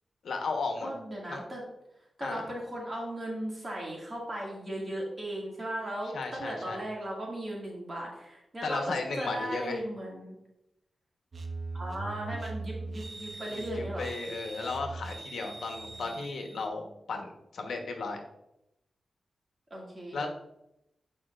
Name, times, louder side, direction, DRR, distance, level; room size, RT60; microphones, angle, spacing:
voice 1, 0.2-0.9 1.3-1.4 2.2-2.4 6.1-6.8 8.6-9.8 13.8-16.8 17.1-18.2 20.1-20.3, left 3 dB, 90° left, 3 dB, 1.0 m, -34 dB
voice 2, 0.8-1.6 2.2-10.4 11.7-14.1 15.9-16.2 16.5-16.9 19.7-20.2, right 1 dB, 30° right, -3 dB, 2.0 m, -37 dB
sound 1, 11.3-16.7, right 3 dB, 50° right, 0.8 m, -40 dB
8.8 x 5.1 x 2.4 m, 0.85 s
wide cardioid pair, 100°, 0 cm